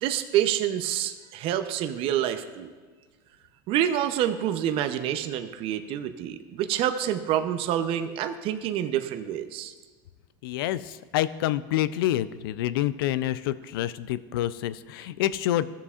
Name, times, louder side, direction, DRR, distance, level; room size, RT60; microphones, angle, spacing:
voice 1, 0.0-2.7 3.7-9.7, right 11 dB, 50° right, 8 dB, 0.6 m, -27 dB
voice 2, 10.4-15.7, left 13 dB, 90° left, 16 dB, 0.4 m, -27 dB
14.5 x 6.9 x 2.4 m, 1.4 s
supercardioid pair, 125°, 12 cm